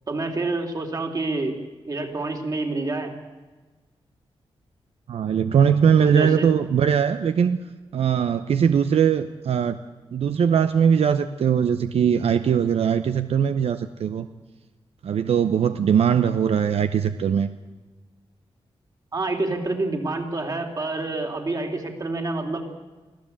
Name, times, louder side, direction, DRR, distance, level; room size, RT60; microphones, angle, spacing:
voice 1, 0.1-1.5 1.9-3.1 6.0-6.5 19.1-22.6, right 2 dB, 40° right, 3 dB, 3.3 m, -27 dB
voice 2, 5.1-9.8 10.1-14.3 15.0-17.5, right 7 dB, 80° right, 10 dB, 0.8 m, -21 dB
24.5 x 15.0 x 8.6 m, 1.3 s
wide cardioid pair, 130°, 10 cm